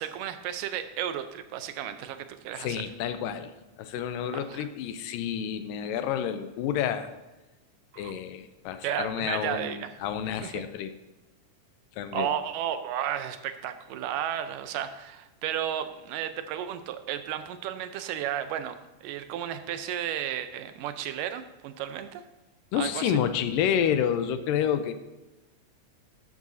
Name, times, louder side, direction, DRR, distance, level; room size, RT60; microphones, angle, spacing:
voice 1, 0.0-2.8 4.3-4.7 7.9-8.1 8.8-9.9 10.4-10.7 12.1-22.2 22.8-23.2, right 10 dB, 80° right, 10 dB, 2.3 m, -33 dB
voice 2, 2.6-7.1 8.0-11.0 12.0-12.3 22.7-24.9, left 9 dB, 90° left, 10 dB, 2.3 m, -29 dB
13.0 x 11.0 x 2.7 m, 1.1 s
omnidirectional pair, 3.9 m